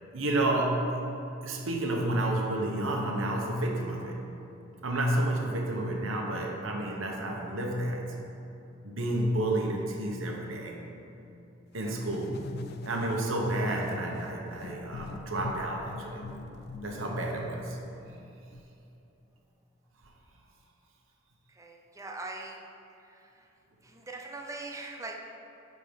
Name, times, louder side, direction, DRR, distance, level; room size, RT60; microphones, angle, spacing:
voice 1, 0.1-1.0 1.4-4.2 4.8-8.1 8.8-10.8 11.7-12.4 12.9-16.3 16.8-17.8, right 1 dB, 90° right, 0 dB, 1.0 m, -30 dB
sound 1, 11.8-18.6, left 3 dB, 55° left, 0.3 m, -43 dB
voice 2, 21.5-22.6 23.0-23.5 23.8-25.2, right 2 dB, 15° right, 1 dB, 0.6 m, -42 dB
9.0 x 3.7 x 5.2 m, 2.9 s
head